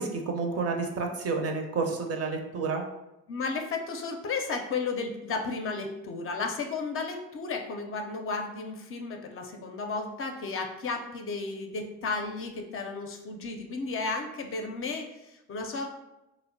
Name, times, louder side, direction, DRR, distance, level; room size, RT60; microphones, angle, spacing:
voice 1, 0.0-2.8, right 4 dB, 45° right, 3 dB, 0.5 m, -30 dB
voice 2, 3.3-15.9, left 4 dB, 40° left, 4 dB, 0.4 m, -33 dB
2.7 x 2.0 x 2.5 m, 0.92 s
hypercardioid pair, 55°, 35 cm